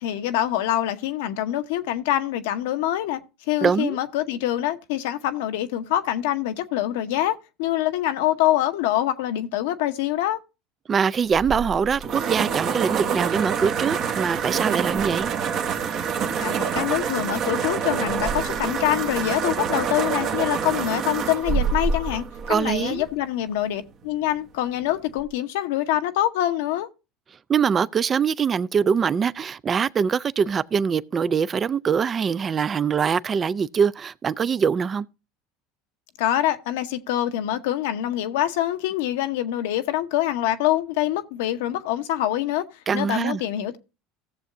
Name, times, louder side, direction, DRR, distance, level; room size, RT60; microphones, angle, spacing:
voice 1, 0.0-3.2 3.5-10.4 16.4-22.2 22.5-26.9 36.2-42.6 42.9-43.8, left 13 dB, 75° left, 0.8 m, -25 dB
voice 2, 3.6-4.0 10.9-15.3 22.5-23.0 27.5-35.1 42.9-43.4, right 6 dB, 35° right, 0.4 m, -23 dB
sound 1, 11.3-23.1, right 6 dB, 50° right, 1.2 m, -26 dB
16.5 x 7.1 x 2.6 m
hypercardioid pair, 85°, 0 cm